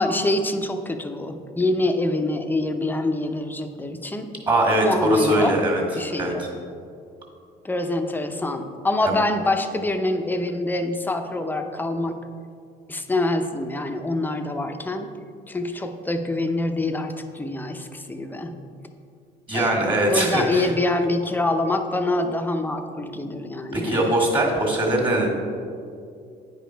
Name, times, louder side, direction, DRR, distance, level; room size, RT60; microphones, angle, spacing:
voice 1, 0.0-4.3 4.8-5.6 5.9-6.4 7.6-12.2 12.9-15.1 15.5-18.6 19.5-24.1, left 2 dB, 10° left, 6 dB, 0.6 m, -25 dB
voice 2, 4.5-5.8 6.2-6.5 9.0-9.2 19.5-20.7 23.7-25.3, right 1 dB, 30° right, -2 dB, 1.9 m, -21 dB
9.2 x 5.1 x 4.5 m, 2.3 s
cardioid pair, 110°, 17 cm